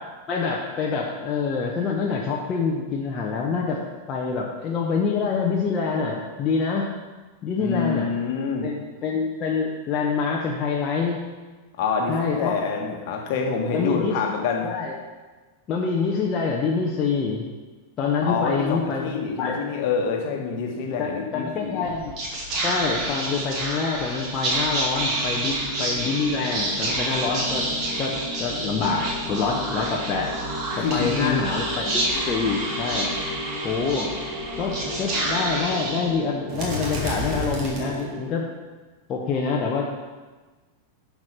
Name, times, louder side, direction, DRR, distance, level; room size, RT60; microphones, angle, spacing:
voice 1, 0.3-3.8 4.1-6.8 7.4-8.1 8.6-11.2 12.1-12.5 13.7-14.2 14.6-14.9 15.7-17.5 18.0-19.1 19.4-19.6 21.0-27.7 28.0-30.6 30.9-33.1 33.6-34.1 34.6-38.4 39.1-39.8, left 5 dB, 30° left, -2 dB, 1.1 m, -26 dB
voice 2, 7.5-8.7 11.8-14.7 18.2-21.9 30.8-31.4, left 5 dB, 45° left, 1 dB, 1.6 m, -26 dB
Whispering, 21.8-38.4, right 1 dB, 35° right, 2.3 m, -28 dB
10.5 x 4.8 x 5.8 m, 1.3 s
figure-of-eight pair, 90°, 0 cm